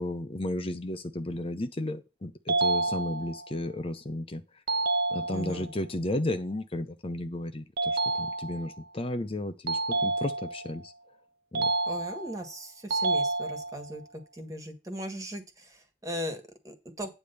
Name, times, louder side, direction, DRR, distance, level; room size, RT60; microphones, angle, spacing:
voice 1, 0.0-4.4 5.1-10.9 11.5-11.7, left 1 dB, 30° left, 0.7 m, -33 dB
sound 1, 2.5-3.5 4.7-5.7 7.8-8.8 9.7-10.7 11.5-12.5 12.9-13.9, right 2 dB, 60° right, 0.8 m, -29 dB
voice 2, 5.3-5.7 11.9-17.1, equal, 20° right, 1.8 m, -38 dB
9.7 x 3.4 x 6.8 m
head